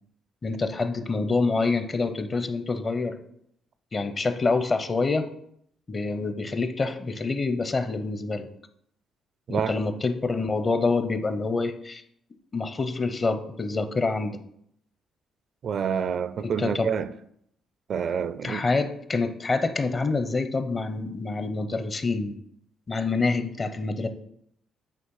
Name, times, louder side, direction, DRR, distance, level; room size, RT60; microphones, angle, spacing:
voice 1, 0.4-3.2 3.9-5.3 5.9-8.5 9.5-12.0 12.5-14.4 16.4-16.9 18.4-22.3 22.9-24.1, left 3 dB, 35° left, 0.7 m, -26 dB
voice 2, 15.6-17.1 17.9-18.6, right 7 dB, 60° right, 0.4 m, -28 dB
8.5 x 3.2 x 5.5 m
cardioid pair, 90°, 0 cm